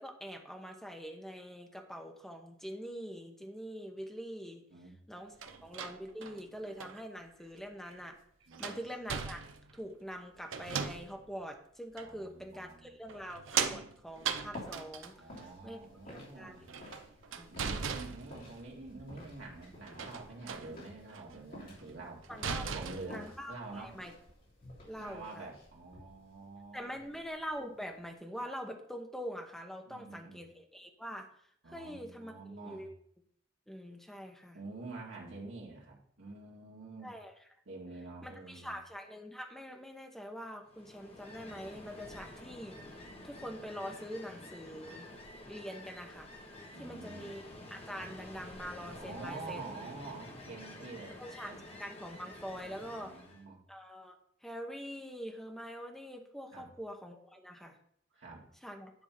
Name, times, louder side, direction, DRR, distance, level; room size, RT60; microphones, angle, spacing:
voice 1, 0.0-4.6 5.1-8.2 8.6-9.4 9.7-15.1 15.6-15.8 16.1-16.7 17.4-17.5 22.3-22.6 23.1-24.1 24.9-25.5 26.7-31.3 31.7-32.9 33.7-34.6 37.0-37.3 38.2-45.1 45.5-46.3 46.8-47.4 47.7-49.6 51.2-51.5 51.8-53.1 53.7-54.2 54.4-57.8 58.6-58.9, equal, ahead, 3 dB, 0.9 m, -44 dB
sound 1, 5.4-7.0 7.9-8.0 8.5-9.8 10.5-11.3 12.0-12.1 13.1-15.4 16.6-18.7 19.9-20.7 21.1-21.4 21.8-21.9 22.2-23.3, right 6 dB, 90° right, 0.7 m, -38 dB
voice 2, 12.0-13.2 15.1-16.7 17.5-22.2 22.6-23.2 23.5-23.9 25.0-27.2 29.9-30.4 31.6-32.9 34.5-37.1 37.7-38.7 46.7-47.3 48.9-51.2 51.5-51.6 52.9-53.6 56.5-56.7 58.1-58.4, right 3 dB, 70° right, -3 dB, 2.2 m, -47 dB
sound 2, 14.1-28.2, left 1 dB, 50° left, 3.1 m, -53 dB
Ocean, 40.7-53.4, left 1 dB, 30° left, 1.3 m, -49 dB
10.0 x 3.6 x 5.8 m, 0.65 s
head